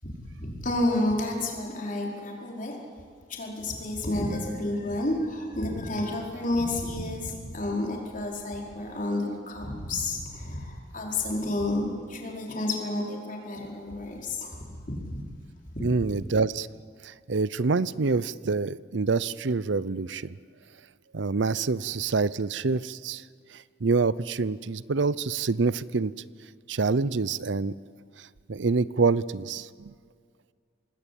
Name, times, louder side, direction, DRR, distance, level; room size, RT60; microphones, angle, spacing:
voice 1, 0.0-2.8 3.3-15.2 15.7-15.9, left 2 dB, 45° left, -1 dB, 4.9 m, -30 dB
voice 2, 15.8-16.7 17.0-20.4 21.1-23.2 23.5-26.1 26.7-27.7 28.2-29.9, right 4 dB, 70° right, 18 dB, 0.6 m, -26 dB
26.5 x 19.5 x 8.5 m, 2.1 s
head